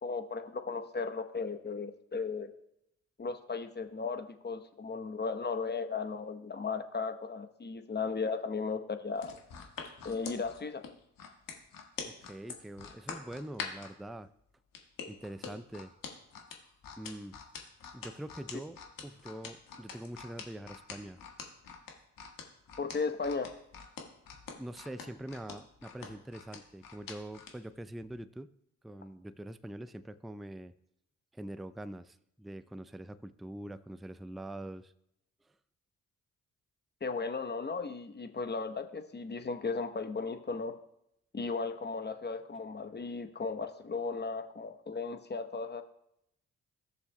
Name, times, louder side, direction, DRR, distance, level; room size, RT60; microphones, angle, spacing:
voice 1, 0.0-2.5 3.2-9.3 10.0-10.8 22.8-23.5 37.0-40.8 41.3-45.8, left 4 dB, 30° left, 8 dB, 0.9 m, -36 dB
sound 1, 9.2-13.9 14.7-27.5 28.0-28.1, left 6 dB, 65° left, 1.5 m, -44 dB
voice 2, 12.1-14.3 15.1-15.9 17.0-17.4 17.9-21.2 24.6-28.5 28.8-30.7 31.3-34.9, right 1 dB, ahead, 14 dB, 0.4 m, -44 dB
16.0 x 6.7 x 2.2 m, 0.78 s
hypercardioid pair, 40°, 36 cm